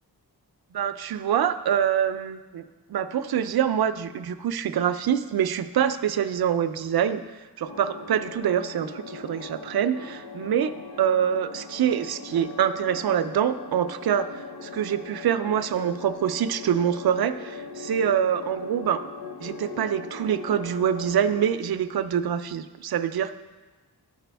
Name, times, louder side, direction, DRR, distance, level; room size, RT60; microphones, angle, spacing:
voice 1, 0.7-2.6 2.9-7.2 7.6-14.3 14.6-19.0 19.4-23.3, right 9 dB, 70° right, 11 dB, 0.5 m, -25 dB
sound 1, 7.7-21.6, left 4 dB, 85° left, 0.8 m, -40 dB
13.5 x 5.0 x 3.4 m, 1.3 s
wide cardioid pair, 100°, 38 cm